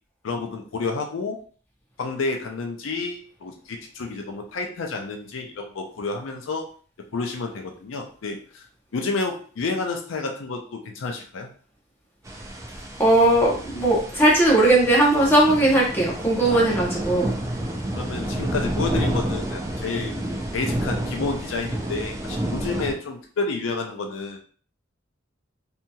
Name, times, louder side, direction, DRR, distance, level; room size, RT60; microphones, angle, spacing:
voice 1, 0.2-1.4 2.0-6.7 7.1-8.6 8.9-11.5 16.5-16.8 17.9-20.2 20.5-24.4, left 3 dB, 75° left, 3 dB, 0.4 m, -30 dB
sound 1, 12.2-22.9, right 1 dB, 15° right, 0.3 m, -30 dB
voice 2, 13.0-17.3, right 1 dB, 10° left, -4 dB, 0.8 m, -18 dB
2.8 x 2.7 x 2.2 m, 0.43 s
head